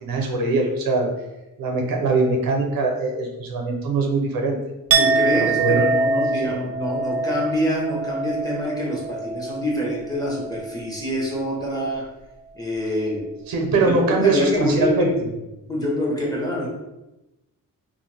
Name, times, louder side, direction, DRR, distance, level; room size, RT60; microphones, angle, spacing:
voice 1, 0.0-1.1 1.6-4.6 5.3-5.8 6.4-6.6 13.5-15.1, right 3 dB, 90° right, 1 dB, 0.6 m, -22 dB
Chink clink, 4.9-10.8 11.1-11.5, right 4 dB, 45° right, 0.4 m, -25 dB
voice 2, 5.0-12.0 12.5-13.3 13.8-15.1 15.7-16.7, equal, 10° left, -4 dB, 0.9 m, -25 dB
2.4 x 2.2 x 3.2 m, 0.99 s
cardioid pair, 85°, 34 cm